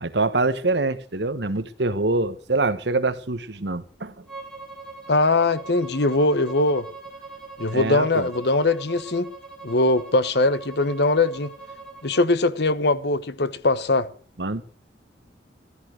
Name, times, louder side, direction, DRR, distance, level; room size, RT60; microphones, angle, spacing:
voice 1, 0.0-4.2 7.7-8.3 14.4-14.6, right 3 dB, 70° right, 1.3 m, -25 dB
Bowed string instrument, 4.3-12.3, right 4 dB, 5° left, 5.9 m, -41 dB
voice 2, 5.1-6.9 7.6-9.3 9.6-11.5 12.0-14.1, left 2 dB, 65° left, 1.2 m, -21 dB
14.5 x 13.5 x 6.4 m
head